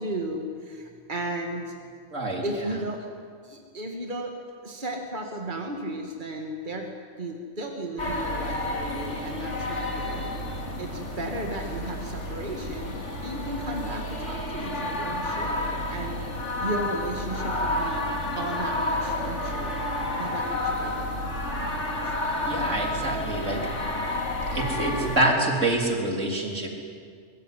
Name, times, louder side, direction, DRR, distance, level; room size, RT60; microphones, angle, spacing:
voice 1, 0.0-1.7 2.4-3.0 3.4-4.3 4.6-6.9 7.2-10.3 10.8-12.9 13.2-16.2 16.6-18.0 18.4-19.9 20.2-21.2, right 1 dB, 40° right, 2 dB, 2.6 m, -34 dB
voice 2, 2.1-2.8 22.4-23.6 24.5-26.7, right 1 dB, 75° right, 1 dB, 4.2 m, -26 dB
sound 1, 8.0-25.2, left 1 dB, 65° left, 3.2 m, -30 dB
23.5 x 23.0 x 9.3 m, 2.1 s
omnidirectional pair, 1.3 m